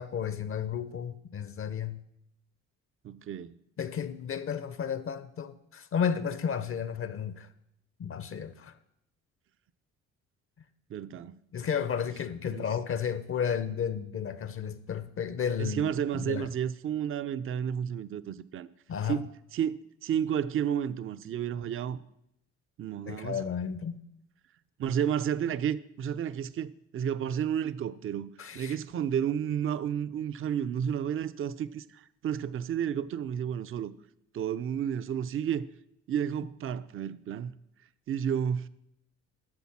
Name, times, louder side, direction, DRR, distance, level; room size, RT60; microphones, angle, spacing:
voice 1, 0.0-2.0 3.8-7.5 8.0-8.7 11.5-16.5 18.9-19.2 23.1-24.0 28.4-28.8, left 7 dB, 45° left, 0.6 m, -33 dB
voice 2, 3.0-3.5 10.9-11.4 12.5-12.6 15.6-18.7 19.1-22.0 22.8-23.4 24.8-33.9 34.3-35.7 36.1-37.5 38.1-38.7, right 9 dB, 45° right, 0.5 m, -31 dB
11.5 x 3.9 x 7.2 m
cardioid pair, 90°, 30 cm